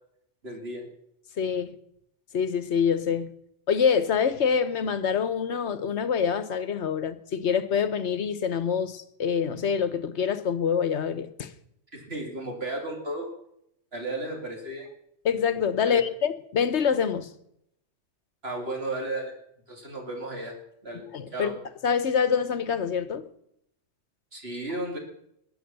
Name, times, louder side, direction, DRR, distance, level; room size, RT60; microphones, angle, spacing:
voice 1, 0.4-0.9 11.9-13.3 13.9-14.9 15.8-16.0 18.4-19.3 19.7-20.5 20.8-21.1 21.3-21.5 24.3-25.0, right 2 dB, 55° right, 2.8 m, -34 dB
voice 2, 1.4-1.7 2.3-3.3 3.7-11.5 15.2-17.3 21.1-21.5 21.8-23.2, left 7 dB, 70° left, 1.3 m, -26 dB
21.0 x 8.6 x 6.8 m
omnidirectional pair, 1.2 m